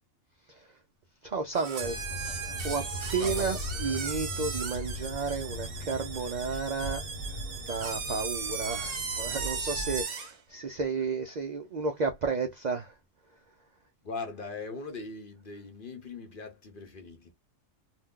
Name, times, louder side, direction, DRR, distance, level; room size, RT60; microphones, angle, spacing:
voice 1, 1.2-2.0 2.6-7.0 7.6-12.9, right 4 dB, 65° right, 0.4 m, -32 dB
sound 1, 1.5-10.4, right 5 dB, 50° right, 0.9 m, -37 dB
sound 2, 1.8-10.0, left 1 dB, 75° left, 1.2 m, -39 dB
voice 2, 3.2-3.6 14.0-17.3, left 4 dB, 50° left, 0.7 m, -40 dB
2.6 x 2.1 x 3.6 m
omnidirectional pair, 1.4 m